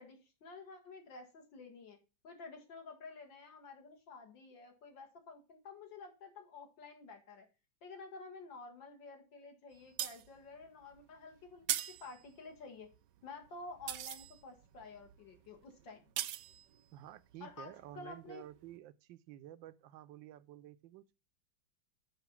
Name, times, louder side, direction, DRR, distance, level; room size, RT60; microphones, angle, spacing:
voice 1, 0.0-2.0 2.2-7.5 7.8-12.9 13.2-16.0 17.4-18.4, left 4 dB, 80° left, 2.5 m, -51 dB
sound 1, 9.7-18.3 18.7-18.8, right 13 dB, 75° right, 1.2 m, -42 dB
voice 2, 16.9-21.1, right 12 dB, 90° right, 1.4 m, -52 dB
7.2 x 5.4 x 7.1 m
omnidirectional pair, 2.0 m